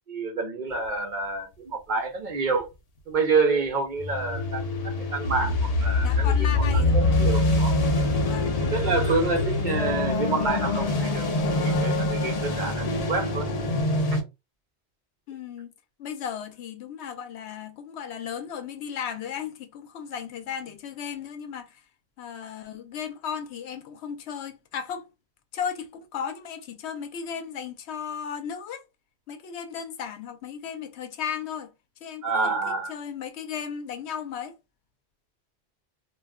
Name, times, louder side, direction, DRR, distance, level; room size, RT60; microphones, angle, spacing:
voice 1, 0.1-2.7 3.1-7.7 8.7-11.3 11.6-13.5 32.2-32.9, right 4 dB, 55° right, 0.6 m, -28 dB
sound 1, 4.0-14.2, left 2 dB, 45° left, 0.5 m, -24 dB
voice 2, 6.0-7.1 8.1-8.7 15.3-15.7 16.0-21.8 22.2-25.1 25.5-28.8 29.3-31.7 32.0-34.5, left 7 dB, 75° left, 0.8 m, -35 dB
2.3 x 2.2 x 3.4 m
omnidirectional pair, 1.1 m